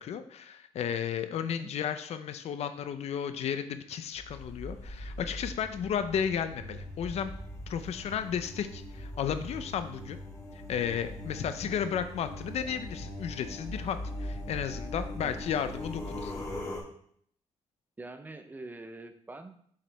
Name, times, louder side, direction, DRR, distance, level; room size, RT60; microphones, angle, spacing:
voice 1, 0.0-7.3 7.7-10.2 10.7-16.3, left 8 dB, 70° left, 10 dB, 0.6 m, -33 dB
sound 1, 4.2-16.8, left 1 dB, 30° left, 2.2 m, -41 dB
voice 2, 11.4-11.7 15.2-15.4 18.0-19.6, right 2 dB, 15° right, 7 dB, 0.6 m, -45 dB
7.3 x 4.9 x 3.4 m, 0.64 s
cardioid pair, 140°, 11 cm